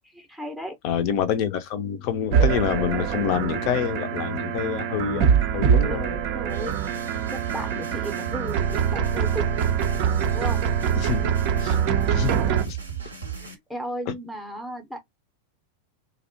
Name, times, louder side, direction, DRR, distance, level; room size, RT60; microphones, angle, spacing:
voice 1, 0.1-0.8 5.7-6.8 7.3-9.5 10.3-10.6 13.4-15.0, equal, ahead, 0.7 m, -35 dB
voice 2, 0.8-6.2 7.8-7.9 11.0-11.7 12.1-12.3 12.6-12.8 14.1-14.2, left 9 dB, 45° left, 0.4 m, -27 dB
sound 1, 2.3-12.6, right 8 dB, 45° right, 0.4 m, -24 dB
sound 2, 6.5-13.5, right 8 dB, 80° right, 0.8 m, -35 dB
2.6 x 2.1 x 2.5 m
figure-of-eight pair, 90°, 0 cm